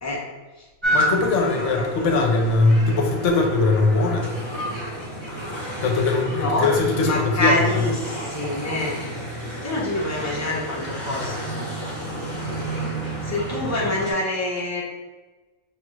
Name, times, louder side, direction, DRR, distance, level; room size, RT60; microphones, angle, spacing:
sound 1, 0.8-14.1, right 1 dB, 25° right, 0.7 m, -30 dB
voice 1, 0.9-4.3 5.8-7.7, left 3 dB, 65° left, 1 dB, 0.9 m, -20 dB
voice 2, 1.5-2.1 6.3-6.7 7.0-9.1 9.6-11.7 13.2-14.8, left 1 dB, 25° left, -3 dB, 0.4 m, -26 dB
5.1 x 2.4 x 3.1 m, 1.2 s
omnidirectional pair, 1.5 m